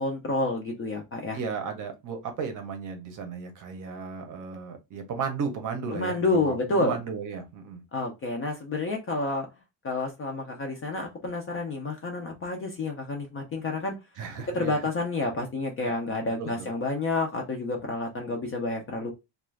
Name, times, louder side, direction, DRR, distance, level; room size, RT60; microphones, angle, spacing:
voice 1, 0.0-1.4 5.9-7.0 7.9-9.5 9.8-14.0 14.5-19.1, left 2 dB, 30° left, 2 dB, 0.4 m, -29 dB
voice 2, 1.3-7.8 14.2-14.8 15.8-15.9 16.4-16.7, right 5 dB, 45° right, 6 dB, 0.6 m, -34 dB
2.4 x 2.3 x 3.1 m, 0.24 s
cardioid pair, 175°, 45 cm